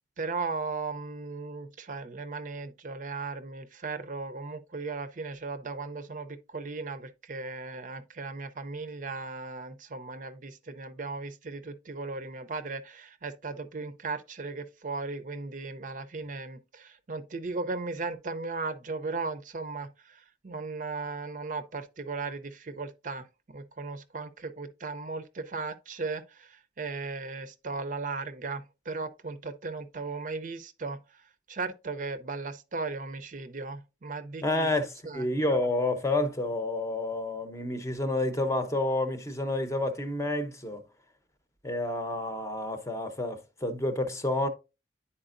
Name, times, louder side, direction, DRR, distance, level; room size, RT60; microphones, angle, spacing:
voice 1, 0.2-31.0 31.5-34.7 35.0-35.2, right 3 dB, 45° right, 0.5 m, -37 dB
voice 2, 34.4-40.8 41.6-44.5, left 2 dB, 15° left, 0.7 m, -29 dB
9.9 x 4.3 x 2.5 m
head